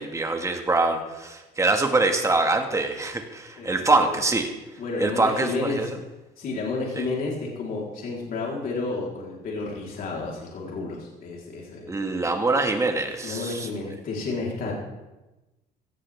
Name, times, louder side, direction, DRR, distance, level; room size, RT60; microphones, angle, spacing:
voice 1, 0.0-4.5 5.0-5.9 7.0-7.1 11.9-13.7, right 3 dB, 20° right, 4 dB, 1.9 m, -24 dB
voice 2, 3.6-4.2 4.8-5.9 6.4-11.9 13.2-14.7, left 3 dB, 60° left, -3 dB, 4.1 m, -31 dB
17.0 x 14.0 x 3.6 m, 1.1 s
cardioid pair, 110°, 17 cm